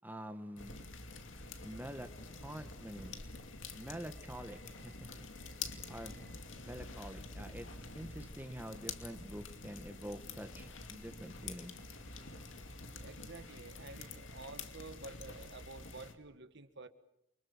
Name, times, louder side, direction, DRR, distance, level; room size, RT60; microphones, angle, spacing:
voice 1, 0.0-0.8 1.6-2.1 2.4-3.2 3.7-5.3 5.9-6.2 6.6-7.7 7.9-11.7, equal, 10° right, 7 dB, 1.6 m, -46 dB
sound 1, 0.6-16.1, left 3 dB, 65° left, 2.6 m, -47 dB
voice 2, 13.0-16.9, right 3 dB, 60° right, 10 dB, 1.7 m, -50 dB
29.5 x 24.5 x 7.4 m, 0.80 s
head